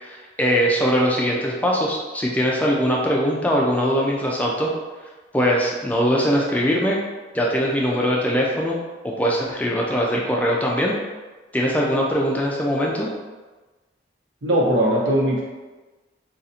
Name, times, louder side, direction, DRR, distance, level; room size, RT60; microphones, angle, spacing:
voice 1, 0.0-4.7 5.3-7.0 7.3-8.8 9.0-11.0 11.5-13.1, equal, 10° left, -3 dB, 0.4 m, -21 dB
voice 2, 14.4-15.4, right 1 dB, 90° right, -5 dB, 1.0 m, -19 dB
2.6 x 2.4 x 4.2 m, 1.2 s
head